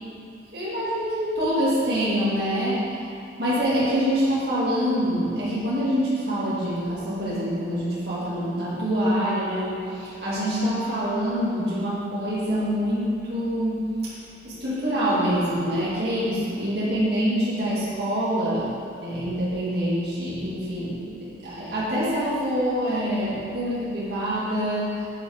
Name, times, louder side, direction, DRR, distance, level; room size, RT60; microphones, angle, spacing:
voice 1, 0.5-3.0 3.4-13.9 14.4-18.7 19.0-25.1, equal, 60° right, -10 dB, 2.2 m, -25 dB
8.8 x 8.3 x 3.6 m, 2.5 s
head